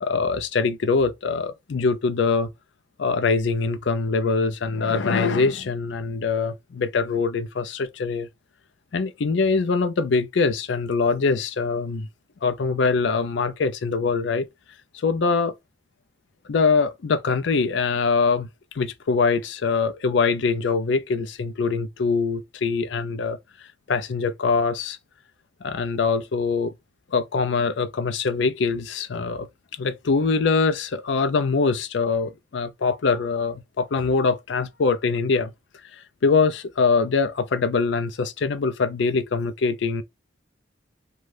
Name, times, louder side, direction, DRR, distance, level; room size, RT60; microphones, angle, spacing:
voice 1, 0.0-2.5 3.0-8.3 8.9-12.1 12.4-14.5 14.9-15.5 16.5-18.5 18.7-23.4 23.9-25.0 25.6-26.7 27.1-29.5 29.8-35.5 36.0-40.0, left 4 dB, 70° left, 0.4 m, -23 dB
2.6 x 2.3 x 3.2 m
head